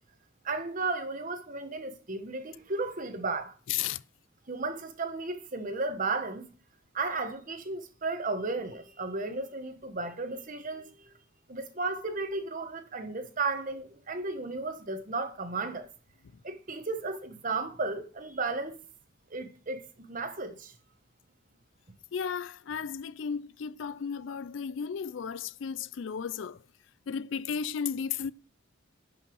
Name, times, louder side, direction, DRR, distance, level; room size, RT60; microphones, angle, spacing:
voice 1, 0.4-3.5 4.5-6.5 6.9-11.1 11.5-15.9 16.4-18.8 19.3-20.7, right 3 dB, 40° right, 1.2 m, -34 dB
voice 2, 3.7-4.0 22.1-26.6 27.1-28.3, left 7 dB, 65° left, 0.4 m, -34 dB
11.0 x 5.6 x 4.6 m
head